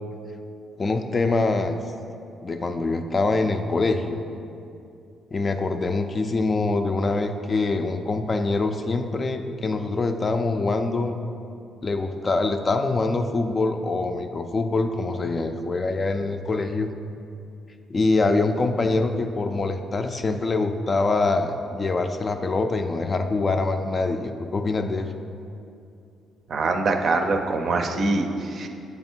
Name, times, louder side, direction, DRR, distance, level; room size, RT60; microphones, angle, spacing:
voice 1, 0.8-1.8 2.4-4.2 5.3-11.2 11.8-16.9 17.9-25.1, left 3 dB, 35° left, 7 dB, 0.4 m, -24 dB
voice 2, 26.5-28.7, right 3 dB, 55° right, 5 dB, 0.5 m, -24 dB
7.9 x 3.4 x 4.4 m, 2.6 s
cardioid pair, 90°, 0 cm